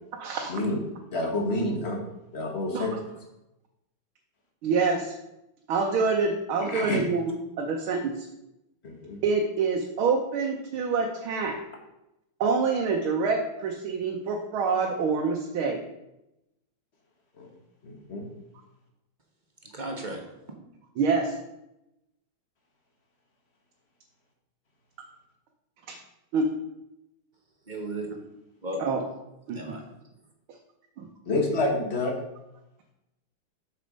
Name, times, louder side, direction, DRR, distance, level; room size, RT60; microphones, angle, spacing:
voice 1, 0.2-0.5 2.7-3.0 4.6-5.1 5.7-8.3 9.2-11.6 12.4-15.8 21.0-21.4 25.9-26.0 26.3-26.5 28.8-29.0 29.5-29.6 31.0-31.1, right 4 dB, 85° right, 1 dB, 1.7 m, -26 dB
voice 2, 1.1-2.0 2.3-2.9 6.7-7.0 8.8-9.2 17.4-17.5 17.8-18.3 31.3-32.1, left 2 dB, 35° left, 1 dB, 1.7 m, -28 dB
voice 3, 19.6-20.3 27.7-28.2 28.6-28.8 29.5-29.9, right 1 dB, 30° right, 2 dB, 1.0 m, -35 dB
6.8 x 6.5 x 5.2 m, 0.89 s
omnidirectional pair, 2.2 m